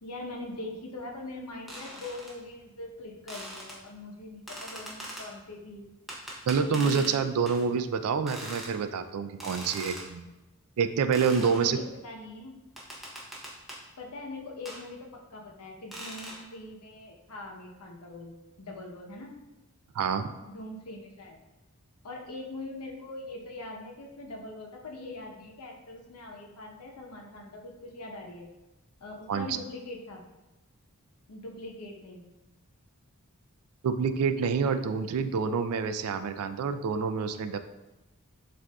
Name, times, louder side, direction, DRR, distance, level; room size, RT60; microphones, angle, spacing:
voice 1, 0.0-5.8 11.4-12.6 14.0-19.3 20.4-21.4 22.0-28.5 29.0-30.2 31.3-32.2, left 2 dB, 85° left, 1 dB, 0.8 m, -42 dB
sound 1, 1.7-2.3 3.3-3.8 4.5-5.3 6.1-7.2 7.5-7.6 8.3-8.7 9.4-10.1 11.1-11.7 12.8-13.8 14.7-14.8 15.9-16.4, equal, ahead, 0.7 m, -41 dB
voice 2, 6.5-10.3 10.8-11.8 19.9-20.3 29.3-29.6 33.8-37.6, right 6 dB, 75° right, 9 dB, 0.3 m, -27 dB
7.3 x 2.6 x 2.3 m, 1.0 s
head